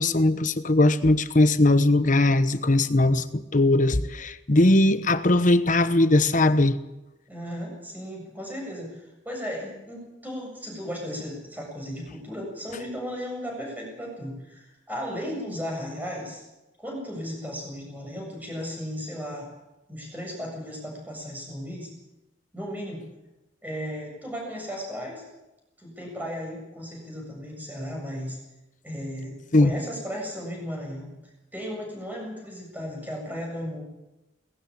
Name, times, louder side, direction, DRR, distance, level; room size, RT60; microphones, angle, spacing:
voice 1, 0.0-6.8 29.5-29.7, left 2 dB, 45° left, 12 dB, 1.1 m, -20 dB
voice 2, 7.3-16.4 16.8-19.5 19.9-21.9 22.5-23.0 23.6-25.2 25.8-28.4 28.8-31.1 31.5-33.8, equal, 10° right, 0 dB, 7.5 m, -35 dB
19.5 x 16.0 x 8.5 m, 0.98 s
head